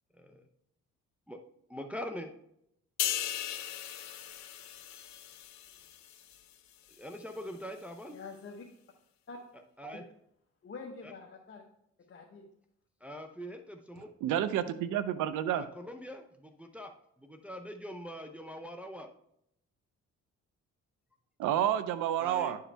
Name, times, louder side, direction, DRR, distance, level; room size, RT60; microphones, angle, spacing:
voice 1, 1.7-2.3 7.0-8.2 9.8-10.0 13.0-14.1 15.5-16.9 17.2-19.1 22.2-22.6, equal, 5° right, 4 dB, 0.6 m, -43 dB
sound 1, 3.0-6.5 6.9-7.1, left 11 dB, 65° left, 0.7 m, -37 dB
voice 2, 8.1-8.6 9.3-9.4 9.9-10.1 10.6-11.6 12.1-12.5, left 4 dB, 40° left, 0 dB, 1.0 m, -46 dB
voice 3, 14.2-15.7 21.4-22.6, right 10 dB, 90° right, 13 dB, 0.6 m, -29 dB
9.8 x 4.8 x 3.3 m, 0.75 s
cardioid pair, 90°, 30 cm